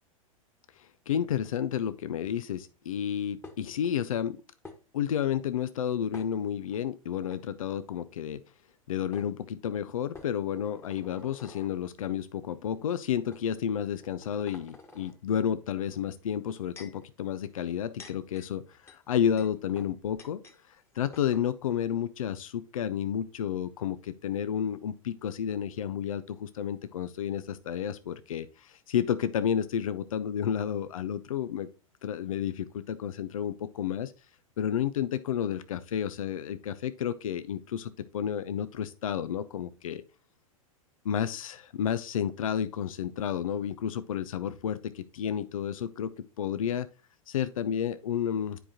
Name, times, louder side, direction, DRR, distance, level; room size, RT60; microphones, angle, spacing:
voice 1, 0.7-4.4 4.9-8.4 8.9-20.4 20.7-31.7 32.0-34.1 34.6-40.0 41.0-46.9 47.3-48.6, left 9 dB, 70° left, 0.5 m, -31 dB
sound 1, 3.4-3.9 4.6-4.8 6.1-6.8 7.2-7.4 8.7-8.8 9.1-9.3 10.1-11.7 12.5-12.7 13.3-13.4 14.0-15.1 16.3-17.0 17.7-20.6 20.8-20.9 21.1-21.5, left 3 dB, 15° left, 1.3 m, -49 dB
10.0 x 4.9 x 2.8 m
figure-of-eight pair, 95°, 18 cm